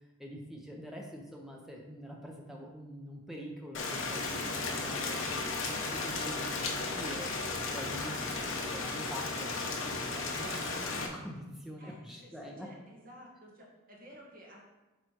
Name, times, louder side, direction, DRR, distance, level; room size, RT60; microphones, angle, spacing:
voice 1, 0.2-6.7 7.0-12.7, equal, ahead, -1 dB, 0.8 m, -45 dB
Rain, 3.7-11.1, left 3 dB, 60° left, 0.9 m, -35 dB
voice 2, 11.8-14.6, equal, 40° right, -3 dB, 1.6 m, -54 dB
7.9 x 3.3 x 4.6 m, 1.1 s
head